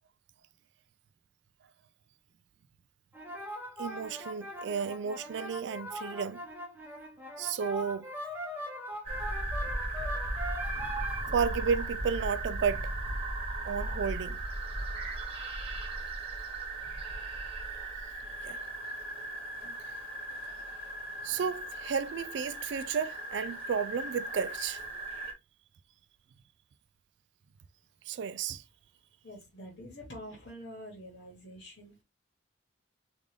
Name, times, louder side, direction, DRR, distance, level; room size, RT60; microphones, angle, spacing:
sound 1, 3.1-11.2, equal, 10° right, 0.7 m, -41 dB
voice 1, 3.8-6.4 7.4-8.1 11.3-13.0 13.6-14.4 18.4-18.6 21.2-24.8 28.1-28.6, right 6 dB, 70° right, 0.3 m, -32 dB
sound 2, 9.0-25.3, right 2 dB, 30° right, 1.1 m, -37 dB
voice 2, 29.2-32.0, equal, 65° left, 1.2 m, -46 dB
3.6 x 2.5 x 3.2 m
head